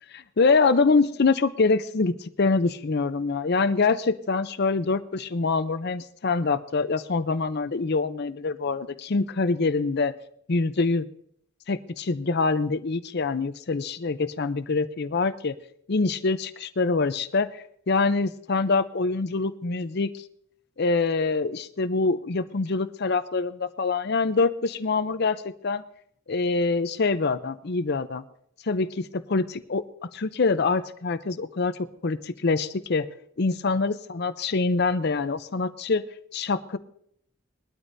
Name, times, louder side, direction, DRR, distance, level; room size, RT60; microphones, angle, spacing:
voice 1, 0.1-10.1 10.5-11.1 11.7-15.5 15.9-17.5 17.9-20.1 20.8-25.8 26.3-28.2 28.7-29.8 30.1-33.1 33.4-36.1 36.3-36.8, left 4 dB, 50° left, 12 dB, 0.6 m, -25 dB
21.0 x 12.5 x 2.7 m, 0.69 s
head